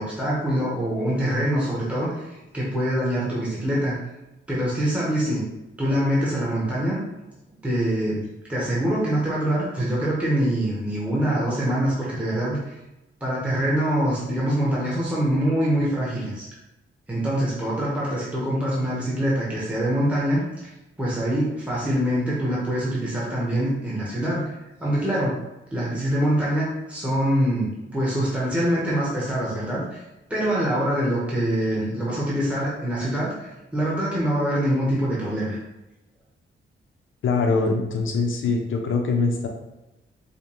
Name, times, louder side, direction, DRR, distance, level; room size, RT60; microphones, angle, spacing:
voice 1, 0.0-4.0 4.5-5.5 5.8-7.0 7.6-12.8 13.2-16.5 17.1-20.7 21.0-24.5 24.8-25.3 25.7-30.0 30.3-35.6, right 1 dB, 5° right, -7 dB, 0.9 m, -24 dB
voice 2, 37.2-39.5, left 4 dB, 70° left, 3 dB, 0.6 m, -23 dB
5.0 x 2.2 x 2.8 m, 0.96 s
wide cardioid pair, 155°, 21 cm